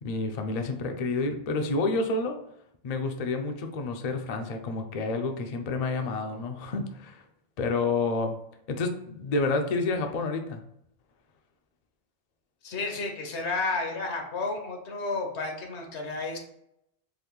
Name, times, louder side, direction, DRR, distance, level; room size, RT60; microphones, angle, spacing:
voice 1, 0.0-2.4 2.8-7.2 7.6-8.3 8.7-10.6, left 3 dB, 55° left, 5 dB, 0.4 m, -29 dB
voice 2, 12.6-16.4, left 3 dB, 75° left, 3 dB, 1.1 m, -31 dB
4.0 x 3.0 x 3.0 m, 0.77 s
omnidirectional pair, 1.2 m